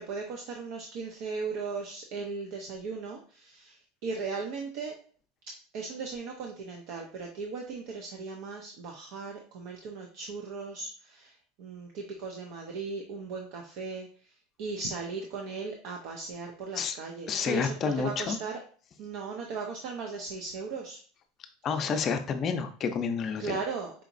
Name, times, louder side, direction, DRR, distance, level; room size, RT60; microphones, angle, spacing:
voice 1, 0.0-5.0 5.5-14.3 14.6-18.6 19.0-21.0 23.4-23.9, right 4 dB, 65° right, 2 dB, 0.6 m, -37 dB
voice 2, 17.3-18.4 21.6-23.6, left 5 dB, 35° left, 7 dB, 0.5 m, -29 dB
5.0 x 2.9 x 2.6 m, 0.43 s
supercardioid pair, 135°, 0 cm